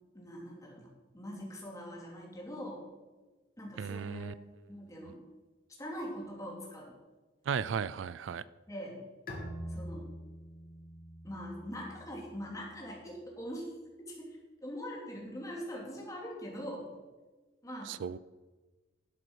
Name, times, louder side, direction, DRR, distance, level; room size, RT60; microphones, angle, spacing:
voice 1, 0.1-2.8 3.6-4.3 4.7-5.2 5.8-7.0 8.7-9.0 9.7-10.1 11.2-13.7 14.1-16.9 17.6-18.0, equal, 15° left, -2 dB, 2.9 m, -42 dB
voice 2, 3.8-4.3 7.5-8.4 17.9-18.2, right 6 dB, 85° right, 18 dB, 0.4 m, -35 dB
Bowed string instrument, 9.3-12.7, equal, 50° left, 2.3 m, -45 dB
11.0 x 7.7 x 6.2 m, 1.3 s
head